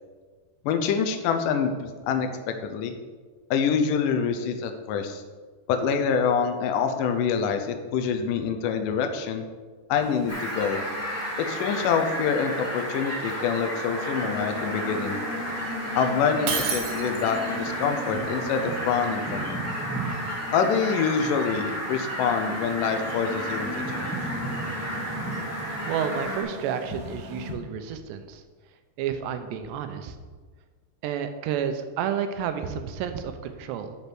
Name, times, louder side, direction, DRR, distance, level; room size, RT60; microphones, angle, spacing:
voice 1, 0.7-1.7 2.1-3.0 3.5-5.2 5.7-9.4 9.9-10.8 11.4-15.2 16.0-19.6 20.5-24.1 27.5-27.6, left 6 dB, 80° left, 6 dB, 1.9 m, -26 dB
sound 1, 10.0-27.5, equal, 55° right, 1.6 m, -38 dB
Fowl, 10.3-26.4, right 1 dB, 15° left, 0.5 m, -32 dB
Shatter, 16.5-17.5, right 6 dB, 75° right, 3.1 m, -29 dB
voice 2, 25.9-28.4 29.0-30.2 31.0-34.0, right 8 dB, 90° right, 8 dB, 3.0 m, -30 dB
10.0 x 5.5 x 6.0 m, 1.4 s
omnidirectional pair, 4.8 m